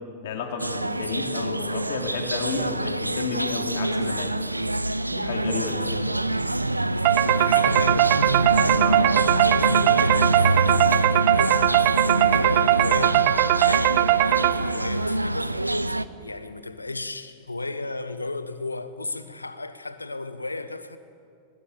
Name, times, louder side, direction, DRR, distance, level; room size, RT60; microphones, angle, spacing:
voice 1, 0.2-4.3 5.0-6.1 8.7-9.1, left 5 dB, 55° left, 3.5 m, -32 dB
sound 1, 0.6-16.1, right 1 dB, 85° right, 0.7 m, -25 dB
voice 2, 6.8-8.5 9.2-11.6 12.0-15.5 16.2-21.0, left 2 dB, 80° left, 1.3 m, -34 dB
sound 2, 7.0-14.9, right 16 dB, 45° right, 0.7 m, -20 dB
23.0 x 20.5 x 8.6 m
figure-of-eight pair, 90°, 0 cm